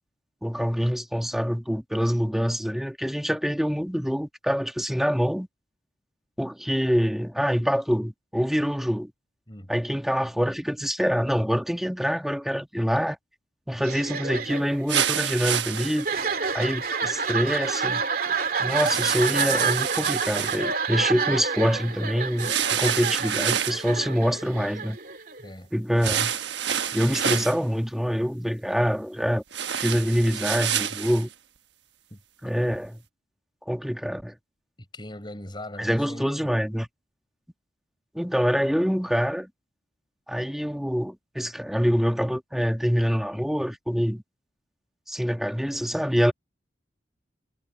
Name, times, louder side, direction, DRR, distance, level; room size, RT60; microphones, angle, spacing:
voice 1, 0.4-5.5 6.4-9.1 9.7-13.2 13.7-16.1 16.5-18.0 18.6-25.0 25.7-26.3 26.9-29.4 29.8-31.3 32.4-33.0 33.7-34.3 35.8-36.9 38.1-39.5 40.3-44.2 45.1-46.3, equal, ahead, 1.6 m, -25 dB
sound 1, 13.8-25.5, right 5 dB, 50° right, 2.4 m, -29 dB
sound 2, 14.9-16.2 18.7-20.6 22.4-23.9 26.0-27.6 29.5-31.2, right 9 dB, 75° right, 1.3 m, -28 dB
voice 2, 25.4-25.7 32.1-32.2 34.8-36.5, left 1 dB, 25° left, 5.6 m, -40 dB
head